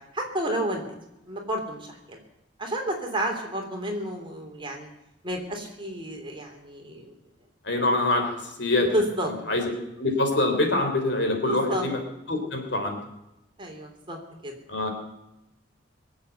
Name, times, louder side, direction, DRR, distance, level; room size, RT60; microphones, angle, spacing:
voice 1, 0.1-0.8 1.3-2.2 2.6-4.9 5.2-7.1 8.8-9.3 11.5-11.8 13.6-14.5, right 1 dB, 25° right, 2 dB, 3.3 m, -31 dB
voice 2, 7.6-8.9 9.5-9.6 10.0-12.0 12.3-13.0 14.7-14.9, left 2 dB, 70° left, 4 dB, 3.6 m, -24 dB
22.5 x 7.9 x 8.1 m, 0.91 s
head